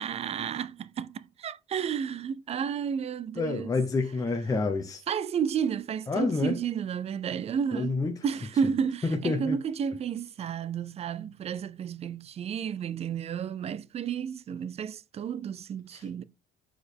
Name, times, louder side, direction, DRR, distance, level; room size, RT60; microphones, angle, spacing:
voice 1, 0.0-3.8 5.1-16.2, right 7 dB, 40° right, 0.5 m, -32 dB
voice 2, 3.4-5.0 6.1-6.6 7.7-8.2 9.0-9.6 15.9-16.0, left 3 dB, 20° left, 0.8 m, -28 dB
6.2 x 4.8 x 3.4 m
cardioid pair, 110°, 17 cm